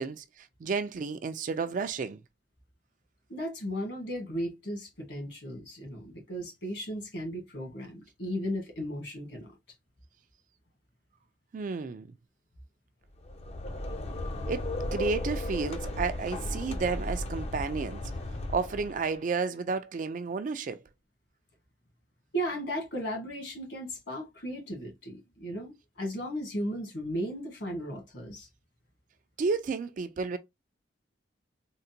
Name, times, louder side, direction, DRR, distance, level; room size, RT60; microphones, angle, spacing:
voice 1, 0.0-2.2 11.5-12.1 14.4-18.0 18.5-20.8 29.4-30.4, right 4 dB, 45° right, 0.3 m, -32 dB
voice 2, 3.3-9.5 22.3-28.5, equal, 70° left, 1.5 m, -36 dB
sound 1, 13.1-19.2, left 1 dB, 35° left, 0.5 m, -35 dB
3.7 x 2.1 x 2.7 m
head